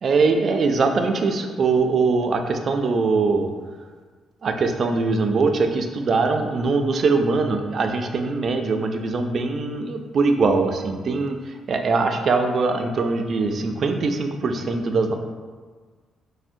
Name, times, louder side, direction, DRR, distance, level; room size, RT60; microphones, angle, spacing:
voice 1, 0.0-3.5 4.4-15.1, right 4 dB, 50° right, 5 dB, 0.3 m, -22 dB
4.4 x 2.0 x 2.5 m, 1.5 s
cardioid pair, 90°, 0 cm